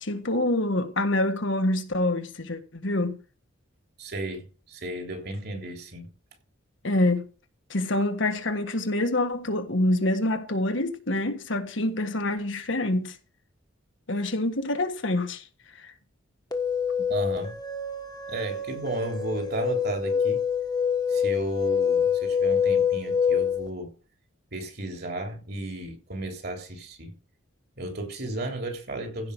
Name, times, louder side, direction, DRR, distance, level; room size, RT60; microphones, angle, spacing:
voice 1, 0.0-3.2 6.8-7.3 7.7-13.2 14.1-15.5 15.8-15.9, left 1 dB, 65° left, 1.6 m, -26 dB
voice 2, 4.0-6.1 17.1-17.6 18.3-20.5 21.1-23.9 24.5-27.1 27.8-29.3, right 1 dB, 50° right, 3.4 m, -34 dB
sound 1, 16.5-23.7, left 7 dB, 20° left, 1.4 m, -26 dB
15.5 x 5.7 x 5.5 m
head